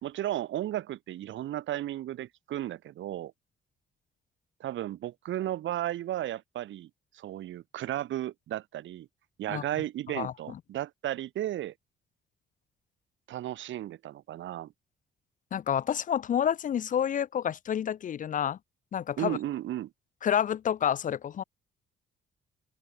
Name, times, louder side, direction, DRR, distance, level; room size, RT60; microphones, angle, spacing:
voice 1, 0.0-3.3 4.6-9.1 9.4-11.7 13.3-14.7 19.2-19.9, right 13 dB, 70° right, 1.1 m, -34 dB
voice 2, 15.5-18.6 18.9-19.4 20.2-21.4, left 9 dB, 40° left, 0.4 m, -29 dB
open air
cardioid pair, 90°, 20 cm